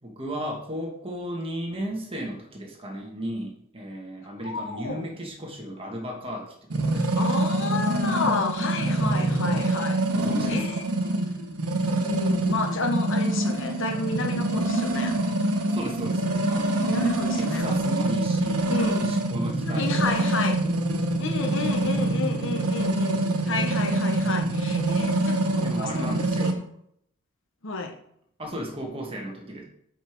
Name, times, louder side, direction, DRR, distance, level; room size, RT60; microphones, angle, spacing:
voice 1, 0.0-7.2 10.1-10.9 15.7-17.1 17.4-20.4 25.6-26.6 28.4-29.6, equal, 25° right, 1 dB, 1.4 m, -35 dB
voice 2, 4.4-5.1 6.9-10.1 10.5-10.8 12.0-15.2 16.9-17.7 18.7-19.1 19.6-20.6 21.2-26.5 27.6-27.9, left 3 dB, 60° left, 5 dB, 1.1 m, -31 dB
sound 1, 6.7-26.5, right 1 dB, 90° right, 1.1 m, -25 dB
7.2 x 5.0 x 4.5 m, 0.70 s
head